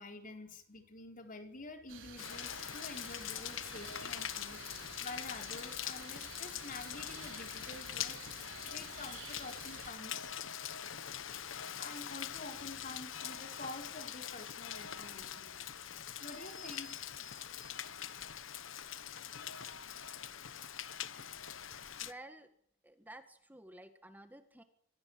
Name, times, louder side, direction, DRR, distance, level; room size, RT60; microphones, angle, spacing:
voice 1, 0.0-8.2 8.6-10.3 11.8-15.6 16.1-17.8, left 2 dB, 45° left, 5 dB, 4.2 m, -48 dB
sound 1, 1.9-9.9, right 6 dB, 75° right, 4.6 m, -52 dB
Rain, 2.2-22.1, left 9 dB, 85° left, 1.2 m, -43 dB
voice 2, 22.0-22.5 22.8-24.6, right 1 dB, 10° right, 8 dB, 1.8 m, -52 dB
25.5 x 17.0 x 8.7 m, 0.69 s
head